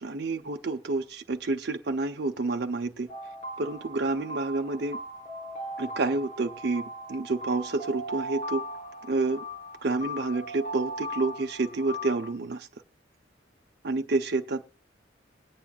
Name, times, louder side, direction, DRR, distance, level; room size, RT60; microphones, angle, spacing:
voice 1, 0.0-3.1 3.6-5.0 5.8-8.7 9.0-9.5 9.8-12.7 13.8-14.6, right 3 dB, 60° right, 4 dB, 0.7 m, -29 dB
sound 1, 3.1-12.3, equal, 40° left, 2.5 m, -38 dB
21.0 x 8.8 x 2.4 m, 0.34 s
head